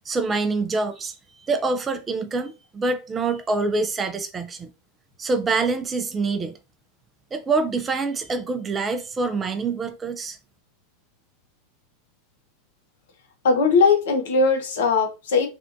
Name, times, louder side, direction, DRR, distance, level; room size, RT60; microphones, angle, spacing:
voice 1, 0.1-4.7 5.2-6.5 7.3-10.4, right 3 dB, 25° right, 0.4 m, -25 dB
voice 2, 13.4-15.5, left 4 dB, 70° left, 0.9 m, -19 dB
3.4 x 2.4 x 2.6 m
hypercardioid pair, 90°, 0 cm